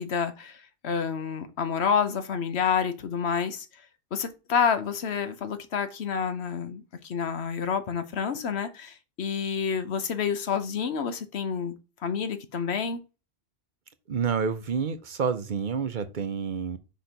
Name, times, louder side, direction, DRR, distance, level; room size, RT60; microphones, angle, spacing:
voice 1, 0.0-3.7 4.1-11.7 12.0-13.0, left 6 dB, 90° left, 1.1 m, -28 dB
voice 2, 14.1-16.8, right 6 dB, 55° right, 0.8 m, -28 dB
5.3 x 4.4 x 5.1 m
omnidirectional pair, 1.1 m